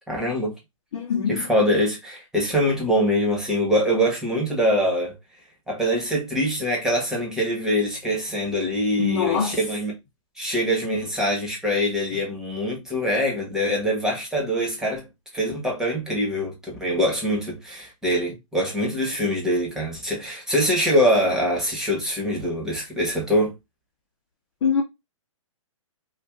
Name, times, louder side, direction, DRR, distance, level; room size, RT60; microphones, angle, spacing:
voice 1, 0.1-0.5 1.3-5.1 5.7-9.9 10.4-15.1 15.3-23.5, equal, 5° right, 1.3 m, -24 dB
voice 2, 0.9-1.4 9.0-9.6 24.6-24.8, left 6 dB, 55° left, 1.1 m, -23 dB
2.9 x 2.5 x 3.5 m
hypercardioid pair, 140°, 17 cm